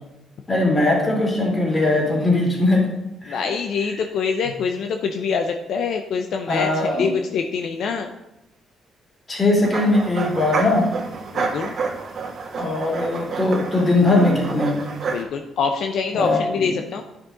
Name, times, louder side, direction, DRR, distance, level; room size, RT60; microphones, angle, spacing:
voice 1, 0.5-2.9 3.2-3.5 6.5-7.1 9.3-10.9 12.6-14.8 16.1-16.7, left 2 dB, 30° left, -2 dB, 3.3 m, -20 dB
voice 2, 3.3-8.1 11.3-11.7 15.1-17.0, left 5 dB, 70° left, 5 dB, 0.6 m, -25 dB
sound 1, 9.6-15.2, right 4 dB, 55° right, 1.7 m, -29 dB
10.5 x 6.1 x 3.8 m, 0.91 s
cardioid pair, 90°, 0 cm